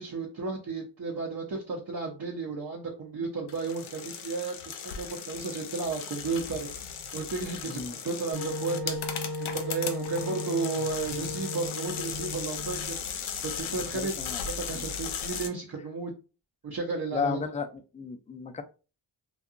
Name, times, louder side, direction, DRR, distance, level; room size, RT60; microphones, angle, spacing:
voice 1, 0.0-14.1 14.6-16.1 16.6-17.4, right 4 dB, 50° right, -2 dB, 0.8 m, -34 dB
sound 1, 3.5-15.5, left 7 dB, 85° left, 0.6 m, -37 dB
Wind instrument woodwind instrument, 8.3-13.0, left 1 dB, 85° right, 0.8 m, -36 dB
voice 2, 13.9-14.4 17.1-17.7 17.9-18.6, left 5 dB, 15° left, 7 dB, 0.3 m, -33 dB
2.7 x 2.3 x 2.5 m, 0.33 s
cardioid pair, 55°, 47 cm